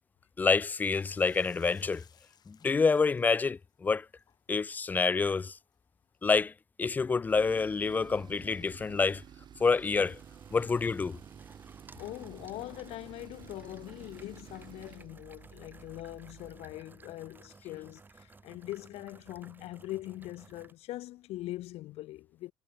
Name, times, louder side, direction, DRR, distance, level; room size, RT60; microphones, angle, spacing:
voice 1, 0.4-2.0 2.5-4.1 4.5-5.6 6.2-6.5 6.8-9.2 9.6-10.2 10.5-11.2, left 4 dB, 15° left, 0.3 m, -27 dB
sound 1, 0.9-6.4, left 8 dB, 30° left, 4.6 m, -65 dB
Tools, 7.2-16.7, right 9 dB, 35° right, 2.9 m, -52 dB
sound 2, 9.3-20.7, right 4 dB, 15° right, 7.3 m, -56 dB
voice 2, 12.0-22.5, left 16 dB, 50° left, 0.8 m, -42 dB
cardioid pair, 145°, 13 cm